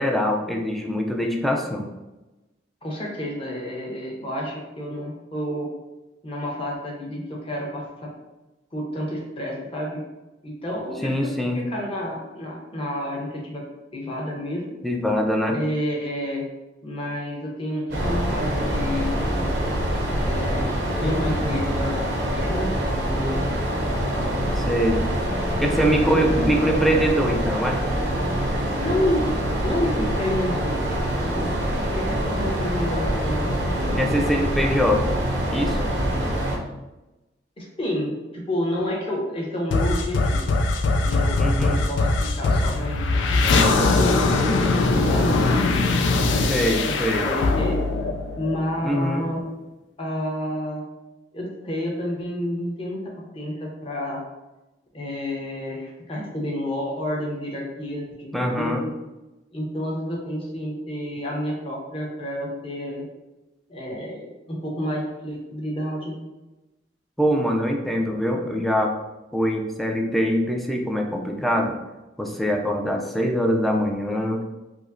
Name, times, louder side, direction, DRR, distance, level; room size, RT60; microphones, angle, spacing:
voice 1, 0.0-1.9 11.0-11.6 14.8-15.6 24.6-25.0 25.6-27.8 34.0-35.2 35.5-35.9 41.4-41.8 46.5-47.3 48.8-49.3 58.3-58.8 67.2-68.9 69.3-71.7 72.2-74.4, equal, ahead, 2 dB, 0.3 m, -23 dB
voice 2, 2.8-5.7 6.2-8.1 8.7-10.0 10.4-13.6 13.9-14.6 15.5-16.4 16.8-19.5 20.1-20.7 21.0-22.0 22.3-22.7 23.0-23.4 24.1-24.7 25.2-26.5 28.8-29.2 29.6-31.6 32.0-34.4 37.6-40.5 41.0-44.2 44.9-47.8 48.4-49.4 50.0-50.8 51.3-53.0 53.3-54.2 54.9-58.9 59.5-63.1 63.7-66.2, left 1 dB, 30° left, -2 dB, 0.8 m, -30 dB
sound 1, 17.9-36.6, equal, 85° right, 0.8 m, -25 dB
sound 2, 39.7-49.0, left 3 dB, 85° left, 0.4 m, -21 dB
4.8 x 2.0 x 2.6 m, 1.0 s
head